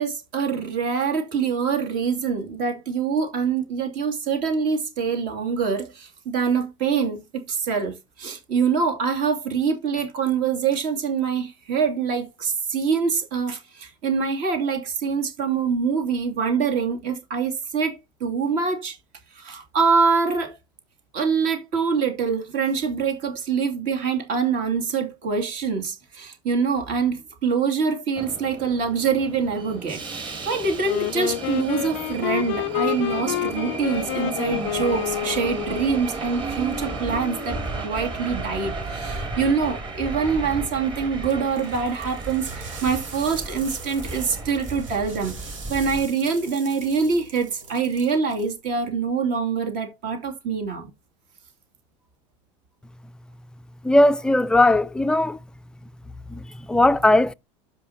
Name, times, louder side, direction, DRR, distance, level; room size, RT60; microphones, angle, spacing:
voice 1, 0.0-19.0 19.3-20.6 21.1-50.9, right 5 dB, 55° right, 2.6 m, -25 dB
Subway metro underground, 28.2-46.1, right 3 dB, 30° right, 2.9 m, -34 dB
Wind instrument woodwind instrument, 30.8-36.0, left 19 dB, 70° left, 0.4 m, -28 dB
sound 1, 41.3-48.5, right 4 dB, 90° right, 2.8 m, -42 dB
voice 2, 53.8-55.4 56.3-56.4 56.7-57.3, left 1 dB, 5° left, 0.4 m, -18 dB
12.5 x 5.1 x 2.8 m
supercardioid pair, 115°, 16 cm